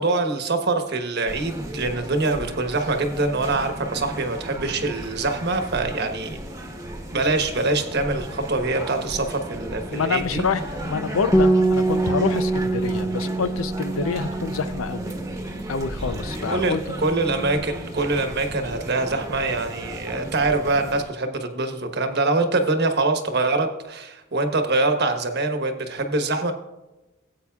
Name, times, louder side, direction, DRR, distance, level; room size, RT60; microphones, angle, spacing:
voice 1, 0.0-6.4 7.1-10.4 16.5-16.8 17.0-26.5, right 2 dB, 55° right, 6 dB, 1.2 m, -24 dB
sound 1, 1.3-21.0, right 1 dB, 15° right, 1.1 m, -35 dB
voice 2, 9.9-15.2 15.7-16.8, left 5 dB, 85° left, 12 dB, 0.6 m, -27 dB
Bass guitar, 11.3-16.0 16.3-17.6, right 2 dB, 15° left, 0.8 m, -25 dB
16.5 x 8.5 x 2.4 m, 1.0 s
head